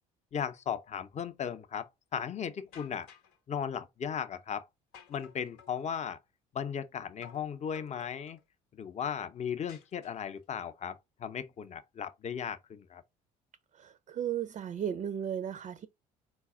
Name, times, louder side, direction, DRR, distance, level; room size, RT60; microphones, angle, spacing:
voice 1, 0.3-3.1 3.5-4.7 5.1-6.2 6.5-8.4 8.8-13.0, left 8 dB, 35° left, 0.6 m, -36 dB
sound 1, 2.7-3.4 4.9-5.8 7.2-7.5 7.7-8.4 9.7-10.4, left 8 dB, 85° left, 0.8 m, -55 dB
voice 2, 13.7-15.9, right 9 dB, 40° right, 0.4 m, -35 dB
4.0 x 2.3 x 3.5 m
hypercardioid pair, 65°, 19 cm